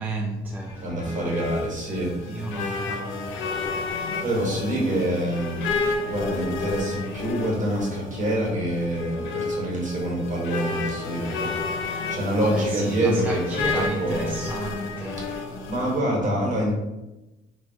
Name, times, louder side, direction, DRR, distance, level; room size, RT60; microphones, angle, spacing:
voice 1, 0.0-1.7 2.3-3.5 12.4-15.3, right 2 dB, 10° right, 0.3 m, -33 dB
sound 1, 0.7-16.0, left 3 dB, 75° left, 0.5 m, -31 dB
voice 2, 0.7-2.5 3.7-14.4 15.2-15.3 15.7-16.7, right 1 dB, 40° right, 1.2 m, -26 dB
2.3 x 2.3 x 3.9 m
cardioid pair, 90°, 20 cm